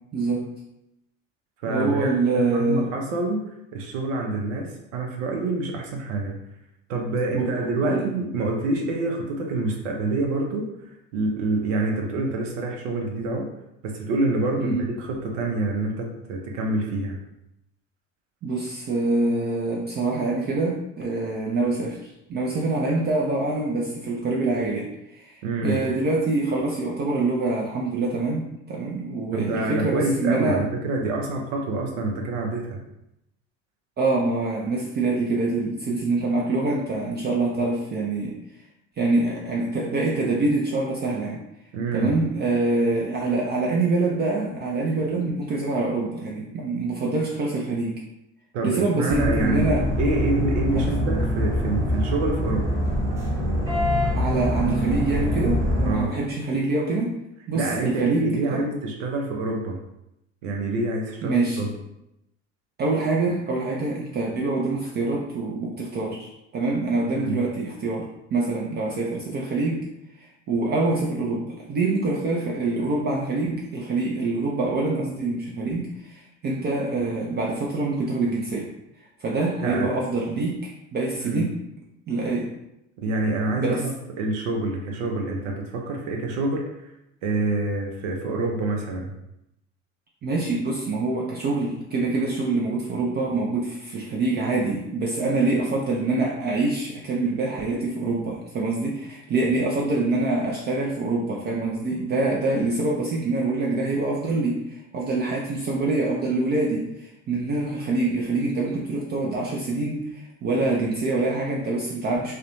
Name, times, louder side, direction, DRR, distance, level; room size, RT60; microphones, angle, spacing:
voice 1, 0.1-0.5 1.7-2.9 7.3-7.5 7.8-8.1 14.6-14.8 18.4-30.6 34.0-38.3 39.0-41.4 41.9-48.0 48.6-49.8 50.7-50.9 54.1-57.1 57.5-58.6 61.2-61.6 62.8-69.9 70.2-78.7 79.2-81.6 82.1-82.5 83.6-83.8 90.2-112.4, right 3 dB, 25° right, -2 dB, 0.4 m, -25 dB
voice 2, 1.6-3.4 3.7-6.4 6.9-13.5 13.8-17.2 25.4-25.8 29.3-32.8 41.7-42.2 48.5-49.6 50.0-52.8 55.8-56.2 57.5-59.8 60.4-61.7 67.2-67.4 79.6-79.9 81.2-81.5 83.0-86.9 87.2-89.1, right 2 dB, 70° right, 1 dB, 0.6 m, -27 dB
sound 1, 49.1-55.9, left 1 dB, 5° right, 0.9 m, -24 dB
2.3 x 2.1 x 2.9 m, 0.84 s
hypercardioid pair, 75°, 38 cm